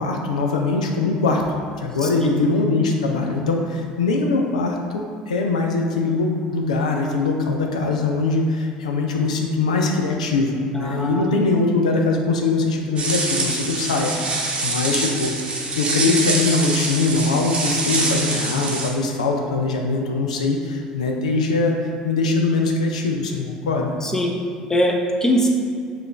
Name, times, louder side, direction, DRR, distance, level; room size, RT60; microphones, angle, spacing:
voice 1, 0.0-15.3 15.7-21.7 22.0-23.9, left 3 dB, 85° left, 1 dB, 0.3 m, -22 dB
voice 2, 2.0-2.3 10.7-11.3 24.0-24.3 24.7-25.5, equal, 15° left, 0 dB, 0.6 m, -22 dB
sound 1, 13.0-18.9, right 2 dB, 30° right, 0.8 m, -25 dB
4.9 x 2.4 x 3.2 m, 2.3 s
hypercardioid pair, 65°, 4 cm